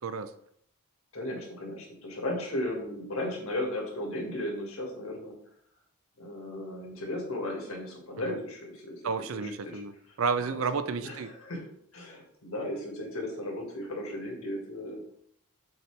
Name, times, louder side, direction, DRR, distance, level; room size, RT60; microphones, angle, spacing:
voice 1, 0.0-0.3 8.3-8.4 9.0-11.3, right 5 dB, 65° right, 11 dB, 0.5 m, -31 dB
voice 2, 1.1-5.3 6.2-9.0 9.3-9.8 10.4-10.6 11.0-11.6 11.9-15.0, left 1 dB, 70° left, 0 dB, 1.8 m, -35 dB
6.6 x 4.4 x 3.3 m, 0.67 s
head